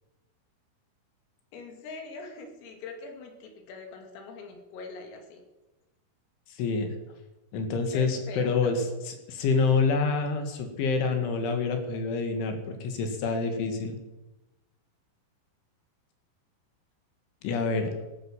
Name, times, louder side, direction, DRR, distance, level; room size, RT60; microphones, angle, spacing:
voice 1, 1.5-5.4 7.9-8.8, left 3 dB, 90° left, 4 dB, 5.2 m, -43 dB
voice 2, 6.6-6.9 7.5-8.8 9.3-14.0 17.4-17.9, left 4 dB, 70° left, 6 dB, 4.3 m, -27 dB
17.0 x 11.0 x 7.5 m, 1.0 s
omnidirectional pair, 5.8 m